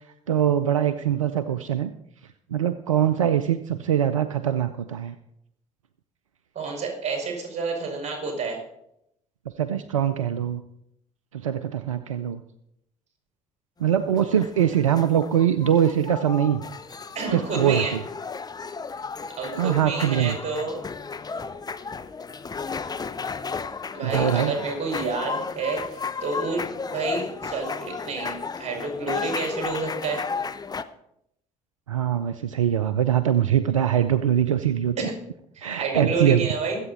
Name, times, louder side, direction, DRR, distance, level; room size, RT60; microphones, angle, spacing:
voice 1, 0.3-1.9 2.5-5.1 9.6-10.6 11.3-12.4 13.8-16.6 17.3-18.0 19.5-20.4 24.0-24.5 31.9-35.0 35.6-36.5, right 10 dB, 90° right, 12 dB, 0.4 m, -22 dB
voice 2, 6.6-8.6 17.2-18.0 19.4-20.8 23.9-26.6 26.9-30.2 35.0-35.1 35.6-36.8, right 4 dB, 45° right, 2 dB, 5.3 m, -29 dB
sound 1, 13.9-30.8, left 5 dB, 25° left, 0.8 m, -34 dB
22.5 x 8.1 x 4.2 m, 0.78 s
figure-of-eight pair, 50°, 16 cm